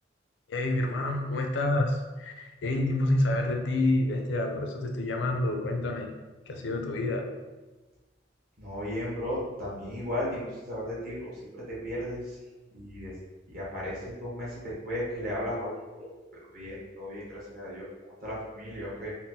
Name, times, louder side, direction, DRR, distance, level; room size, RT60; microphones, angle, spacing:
voice 1, 0.5-6.1 6.5-7.3, left 2 dB, 75° left, 4 dB, 0.4 m, -28 dB
voice 2, 8.6-12.4 12.7-13.1 13.5-16.1 16.5-17.9 18.2-19.1, left 1 dB, 50° right, -6 dB, 1.0 m, -35 dB
4.0 x 2.0 x 2.7 m, 1.2 s
head